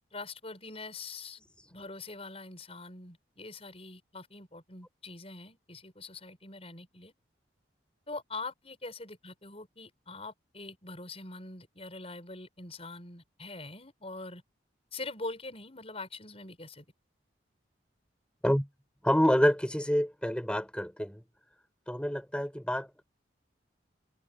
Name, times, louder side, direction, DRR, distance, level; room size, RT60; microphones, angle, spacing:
voice 1, 0.1-1.4 1.7-7.1 8.1-14.4 14.9-16.8, left 3 dB, 30° left, 6.8 m, -43 dB
voice 2, 19.0-21.2 21.9-23.0, equal, 5° left, 5.3 m, -27 dB
open air
head